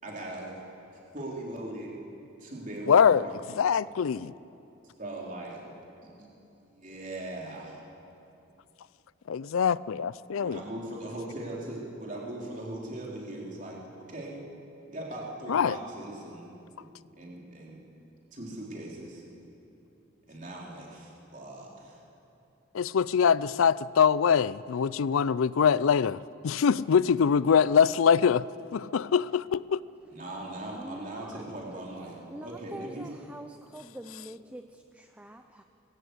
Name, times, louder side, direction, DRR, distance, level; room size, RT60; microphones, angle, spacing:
voice 1, 0.0-0.6 1.1-1.9 2.4-3.3 5.0-5.6 6.0-6.3 6.7-7.8 10.4-14.4 14.9-16.5 16.8-16.9 17.2-17.8 18.3-19.2 20.3-22.0 30.1-33.1, right 1 dB, 40° right, 3.7 m, -39 dB
voice 2, 2.9-3.3 3.6-4.3 9.3-10.6 15.5-15.8 22.7-26.2 26.4-28.5 28.7-29.8, left 7 dB, 85° left, 0.4 m, -23 dB
voice 3, 30.7-31.4 31.7-31.8 32.3-35.6, right 1 dB, 5° right, 0.5 m, -45 dB
20.0 x 16.5 x 8.2 m
head